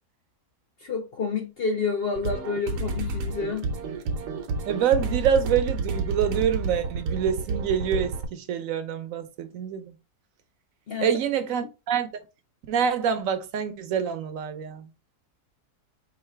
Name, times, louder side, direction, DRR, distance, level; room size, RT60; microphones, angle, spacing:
voice 1, 0.8-3.7 10.9-11.1, left 5 dB, 60° left, 0.6 m, -29 dB
sound 1, 2.1-8.3, right 4 dB, 85° right, 1.4 m, -30 dB
voice 2, 4.7-9.8 11.0-12.1 12.7-14.9, right 8 dB, 60° right, 1.0 m, -26 dB
4.8 x 2.8 x 3.3 m
omnidirectional pair, 1.7 m